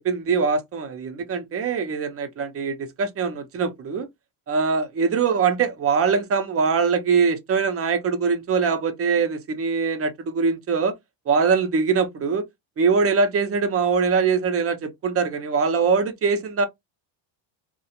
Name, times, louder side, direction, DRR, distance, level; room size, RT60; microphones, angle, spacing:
voice 1, 0.0-4.1 4.5-11.0 11.3-12.4 12.8-16.7, right 5 dB, 30° right, 0.5 m, -22 dB
2.3 x 2.1 x 2.8 m
cardioid pair, 110°, 49 cm